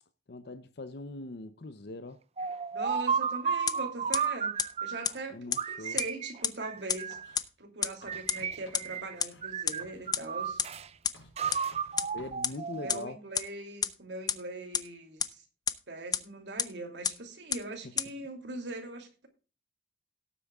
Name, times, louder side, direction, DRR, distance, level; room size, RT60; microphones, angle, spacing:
voice 1, 0.3-2.2 5.3-6.0 12.1-13.2, left 2 dB, 60° left, 0.7 m, -42 dB
sound 1, 2.4-5.1 5.6-7.4 8.0-9.1 9.4-10.9 11.4-13.1, right 6 dB, 35° right, 0.5 m, -33 dB
voice 2, 2.7-7.2 7.6-10.6 12.7-15.4 15.9-19.3, right 2 dB, 70° right, 2.8 m, -41 dB
sound 2, 3.7-3.8 4.1-4.2 4.6-4.7 5.0-5.1 5.5-5.6 6.0-6.1 6.4-6.5 6.9-7.0 7.4-7.5 7.8-7.9 8.3-8.4 8.7-8.8 9.2-9.3 9.7-9.8 10.1-10.2 10.6-10.7 11.0-11.1 11.5-11.6 12.0-12.1 12.4-12.5 12.9-13.0 13.3-13.4 13.8-13.9 14.3-14.4 14.7-14.8 15.2-15.3 15.7-15.8 16.1-16.2 16.6-16.7 17.0-17.1 17.5-17.6 18.0-18.1, left 7 dB, 20° left, 0.7 m, -27 dB
Writing, 7.1-7.5 8.0-12.4, left 1 dB, 85° left, 5.5 m, -57 dB
18.0 x 8.5 x 2.4 m
head